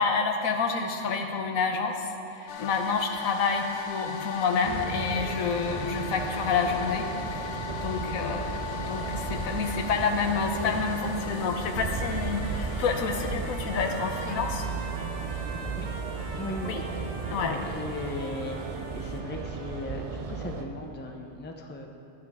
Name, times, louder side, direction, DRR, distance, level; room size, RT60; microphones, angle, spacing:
voice 1, 0.0-8.4 8.9-14.7 16.7-16.8 17.3-17.5, left 5 dB, 85° left, 5 dB, 1.3 m, -28 dB
sound 1, 2.5-19.2, left 7 dB, 65° left, 0.9 m, -41 dB
sound 2, 4.6-20.6, right 4 dB, 50° right, 0.4 m, -35 dB
Trumpet, 11.9-19.8, right 3 dB, 70° right, 1.4 m, -44 dB
voice 2, 16.4-16.8 17.4-18.6 18.9-21.9, left 1 dB, 10° left, 2 dB, 0.5 m, -37 dB
12.5 x 9.4 x 3.6 m, 2.8 s
omnidirectional pair, 1.4 m